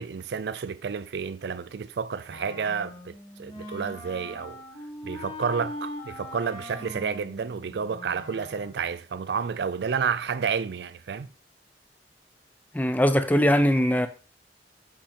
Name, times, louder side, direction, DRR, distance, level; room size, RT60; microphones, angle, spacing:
voice 1, 0.0-4.6 5.0-11.3, right 6 dB, 65° right, 0.4 m, -30 dB
Wind instrument woodwind instrument, 2.3-8.8, left 1 dB, 30° left, 1.7 m, -41 dB
voice 2, 12.7-14.1, equal, 10° left, 0.5 m, -21 dB
5.9 x 5.8 x 4.2 m
head